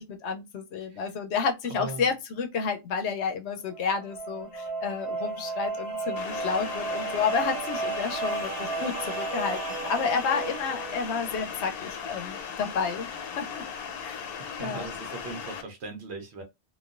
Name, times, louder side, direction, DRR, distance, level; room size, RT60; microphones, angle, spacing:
voice 1, 0.0-13.1 13.4-13.6 14.0-14.3 14.6-14.9, left 5 dB, 90° left, 0.9 m, -30 dB
voice 2, 1.7-2.1 14.4-16.4, right 3 dB, 80° right, 1.1 m, -39 dB
sound 1, 3.7-11.4, right 3 dB, 40° right, 1.1 m, -34 dB
sound 2, 6.2-15.6, left 7 dB, 65° left, 0.7 m, -38 dB
3.0 x 2.3 x 2.4 m
omnidirectional pair, 1.1 m